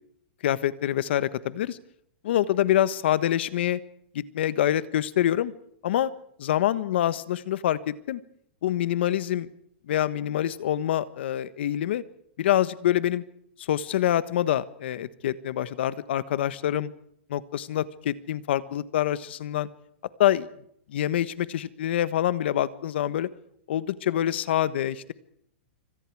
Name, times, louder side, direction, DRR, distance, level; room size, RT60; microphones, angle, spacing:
voice 1, 0.4-1.8 2.2-3.8 4.1-5.5 5.8-6.1 6.4-8.2 8.6-9.5 9.9-12.0 12.4-13.2 13.6-16.9 17.3-19.7 20.2-20.5 20.9-23.3 23.7-25.1, left 12 dB, 70° left, 15 dB, 1.3 m, -26 dB
27.0 x 25.0 x 4.8 m, 0.69 s
supercardioid pair, 155°, 6 cm